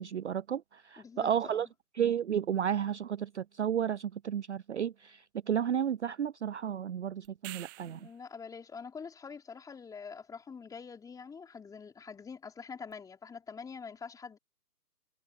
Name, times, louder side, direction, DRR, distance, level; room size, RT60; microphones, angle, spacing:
voice 1, 0.0-1.7 1.9-8.0, right 9 dB, 50° right, 0.5 m, -32 dB
voice 2, 1.0-1.7 7.8-14.4, left 5 dB, 5° left, 3.3 m, -45 dB
sound 1, 7.2-8.2 12.9-13.0, right 24 dB, 15° right, 0.8 m, -46 dB
figure-of-eight pair, 135°, 48 cm